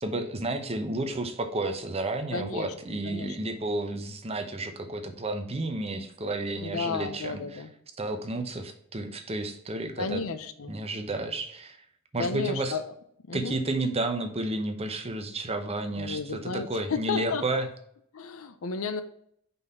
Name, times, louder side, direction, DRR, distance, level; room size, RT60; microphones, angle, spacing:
voice 1, 0.0-7.6 8.0-10.2 10.7-11.8 12.1-12.7 13.3-17.7, right 2 dB, 30° right, 6 dB, 0.9 m, -31 dB
voice 2, 2.3-2.7 3.0-3.4 6.6-7.7 10.0-10.7 12.2-12.8 13.3-13.5 16.0-17.5 18.1-19.0, left 4 dB, 75° left, 10 dB, 0.6 m, -32 dB
5.5 x 4.1 x 5.5 m, 0.68 s
head